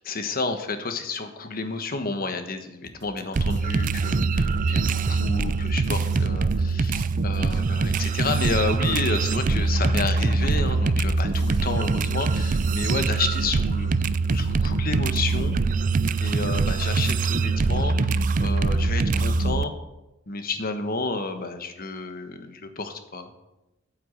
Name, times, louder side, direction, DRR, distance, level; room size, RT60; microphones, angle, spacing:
voice 1, 0.0-13.9 14.3-15.6 16.2-19.7 20.3-23.3, left 3 dB, 50° left, 8 dB, 1.2 m, -31 dB
sound 1, 2.8-13.5, right 2 dB, 65° right, 1.2 m, -48 dB
sound 2, 3.3-19.6, right 3 dB, 40° right, 0.4 m, -23 dB
9.0 x 8.3 x 7.6 m, 0.95 s
head